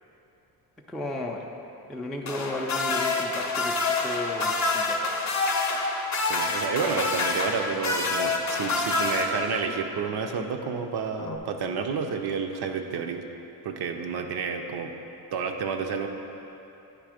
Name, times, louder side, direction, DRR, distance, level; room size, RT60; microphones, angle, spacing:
voice 1, 0.9-1.5 1.9-5.1, left 1 dB, ahead, -1 dB, 0.3 m, -34 dB
sound 1, 2.3-9.8 11.2-11.4, left 3 dB, 45° left, 0.6 m, -27 dB
voice 2, 6.3-13.2 13.6-14.9 15.3-16.1, right 5 dB, 70° right, 4 dB, 0.6 m, -30 dB
9.8 x 3.3 x 4.9 m, 2.9 s
cardioid pair, 135°, 40 cm